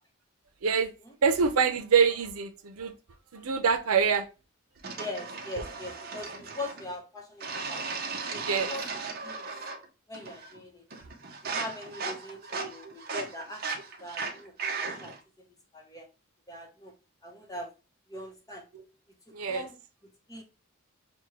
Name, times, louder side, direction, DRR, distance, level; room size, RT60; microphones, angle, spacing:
voice 1, 0.6-0.9 1.2-2.9 3.3-4.3 8.3-8.7 12.6-12.9 18.7-18.8 19.3-19.6, right 6 dB, 90° right, 0.6 m, -26 dB
sound 1, 4.8-6.9 7.4-9.9 10.1-10.6 10.9-15.2, right 4 dB, 45° right, 0.7 m, -37 dB
voice 2, 5.0-7.8 8.3-9.5 10.1-10.8 11.4-13.6 14.0-15.5 15.7-16.1 16.5-16.9 17.2-17.7 18.1-18.7 19.5-19.8 20.3-20.4, left 1 dB, 15° left, 0.8 m, -41 dB
6.1 x 2.2 x 2.9 m
head